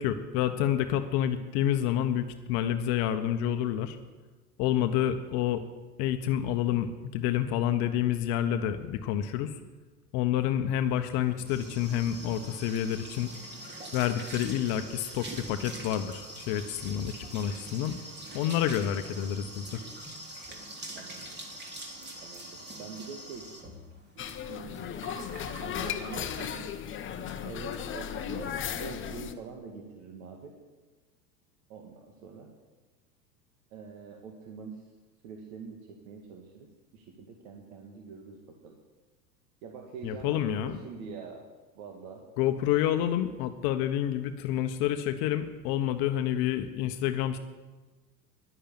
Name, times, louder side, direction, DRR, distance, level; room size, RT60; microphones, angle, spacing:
voice 1, 0.0-4.0 4.6-5.6 6.0-9.6 10.1-13.3 13.9-18.0 18.3-19.8 40.0-40.8 42.4-47.4, left 11 dB, 45° left, 9 dB, 1.1 m, -28 dB
sound 1, 11.0-26.7 27.1-27.4 27.7-27.8 28.1-28.5, right 1 dB, 20° right, 3.1 m, -44 dB
voice 2, 20.9-21.5 22.2-23.5 24.4-26.7 27.2-30.5 31.7-32.5 33.7-34.9 35.2-38.8 39.6-41.4 41.7-42.2, right 5 dB, 55° right, 2 dB, 2.1 m, -45 dB
sound 2, 24.2-29.3, left 9 dB, 25° left, 1.0 m, -36 dB
11.5 x 10.5 x 8.7 m, 1.3 s
hypercardioid pair, 90°, 49 cm